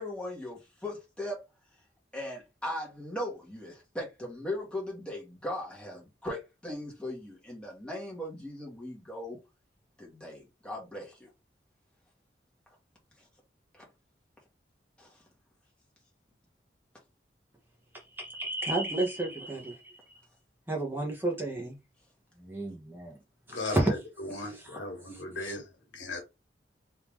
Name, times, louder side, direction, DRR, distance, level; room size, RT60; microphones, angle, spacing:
voice 1, 0.0-1.4 2.1-9.4 10.0-11.3 15.0-15.1, left 1 dB, 5° left, 1.2 m, -38 dB
voice 2, 17.9-20.2 20.7-21.8 22.4-23.2 23.5-23.9 24.3-24.8 25.1-25.6, right 2 dB, 10° right, 0.9 m, -32 dB
voice 3, 23.5-24.0 24.3-26.2, left 2 dB, 85° left, 1.3 m, -37 dB
3.5 x 2.8 x 3.0 m
head